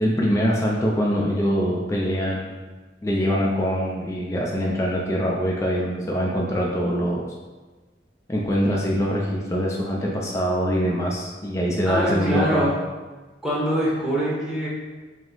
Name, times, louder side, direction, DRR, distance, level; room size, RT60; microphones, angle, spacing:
voice 1, 0.0-2.6 3.0-7.2 8.3-12.7, equal, 15° left, -3 dB, 0.4 m, -23 dB
voice 2, 11.8-12.7 13.4-14.7, right 1 dB, 5° right, -8 dB, 0.9 m, -23 dB
4.8 x 2.0 x 3.8 m, 1.3 s
head